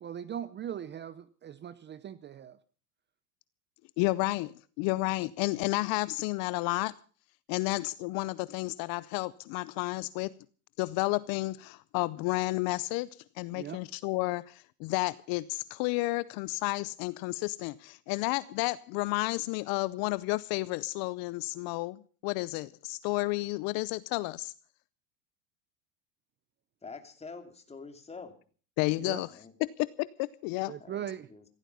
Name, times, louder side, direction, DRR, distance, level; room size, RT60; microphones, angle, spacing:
voice 1, 0.0-2.6 13.5-13.8 29.0-29.2 30.7-31.3, right 9 dB, 25° right, 0.7 m, -40 dB
voice 2, 4.0-6.9 7.5-10.3 10.8-13.1 13.4-24.5 28.8-29.3 29.8-30.7, left 22 dB, 55° left, 0.7 m, -31 dB
voice 3, 26.8-28.3 29.3-29.5 30.8-31.0 31.3-31.4, left 4 dB, 15° left, 2.8 m, -46 dB
16.0 x 15.5 x 5.4 m
supercardioid pair, 125°, 43 cm